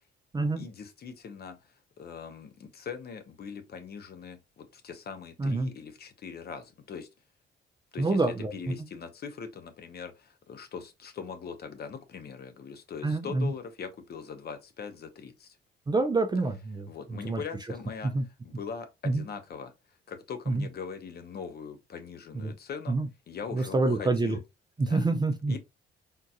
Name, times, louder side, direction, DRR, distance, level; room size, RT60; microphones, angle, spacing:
voice 1, 0.6-1.6 2.0-7.1 7.9-8.2 8.5-15.6 16.9-18.1 18.4-19.7 20.1-23.0 23.3-24.4 24.9-25.1 25.5-25.6, left 6 dB, 55° left, 0.8 m, -41 dB
voice 2, 5.4-5.7 8.0-8.7 13.0-13.5 15.9-17.4 18.1-18.2 19.0-19.2 20.5-20.7 22.3-22.5 22.9-23.1 23.5-24.4 24.8-25.6, right 2 dB, 20° right, 0.5 m, -27 dB
3.7 x 2.7 x 2.3 m
cardioid pair, 90°, 20 cm